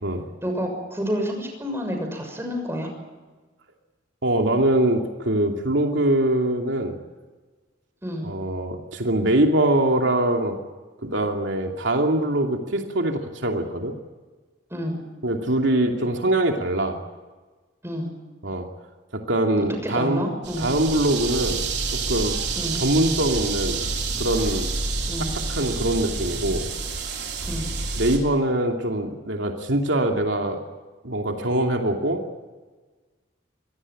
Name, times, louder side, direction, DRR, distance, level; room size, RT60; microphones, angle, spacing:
voice 1, 0.4-2.9 8.0-8.3 14.7-15.0 17.8-18.1 19.8-20.7 22.6-22.8 25.1-25.4 27.4-27.7, equal, 15° right, 3 dB, 6.5 m, -29 dB
voice 2, 4.2-7.0 8.2-10.6 11.0-13.9 15.2-17.0 18.4-18.7 19.1-20.2 20.6-22.4 22.7-23.8 24.2-24.7 25.5-26.7 28.0-30.6 31.0-32.2, right 1 dB, 80° right, 3 dB, 2.8 m, -23 dB
sound 1, 20.4-28.2, right 4 dB, 60° right, 4.6 m, -28 dB
26.0 x 18.0 x 8.8 m, 1.3 s
head